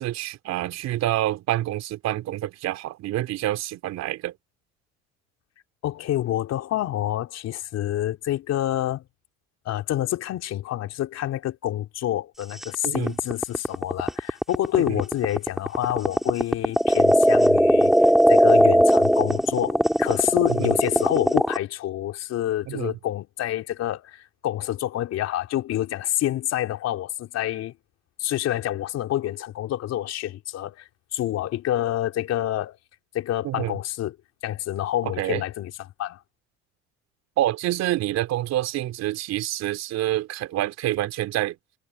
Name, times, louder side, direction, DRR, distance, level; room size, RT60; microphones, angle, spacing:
voice 1, 0.0-4.3 12.8-13.1 14.9-15.0 20.5-20.7 22.7-22.9 33.4-33.7 35.0-35.4 37.4-41.5, right 14 dB, 65° right, 3.4 m, -27 dB
voice 2, 5.8-9.0 9.7-27.7 28.2-32.8 33.1-34.1 34.4-35.7 36.0-36.2, left 13 dB, 60° left, 3.8 m, -27 dB
sound 1, 12.6-21.6, equal, ahead, 4.4 m, -18 dB
supercardioid pair, 75°, 29 cm